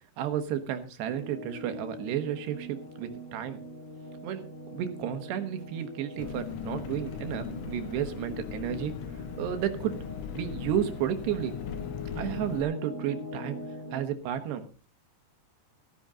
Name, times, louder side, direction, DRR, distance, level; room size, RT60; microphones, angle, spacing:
voice 1, 0.2-3.6 4.2-4.5 4.7-8.9 9.4-10.0 10.3-11.5 12.1-13.6 13.9-14.6, right 10 dB, 85° right, 8 dB, 3.5 m, -32 dB
sound 1, 1.0-14.0, left 1 dB, 25° left, 2.0 m, -43 dB
Engine, 6.2-12.6, left 8 dB, 85° left, 1.3 m, -39 dB
14.0 x 13.0 x 3.8 m, 0.36 s
omnidirectional pair, 4.7 m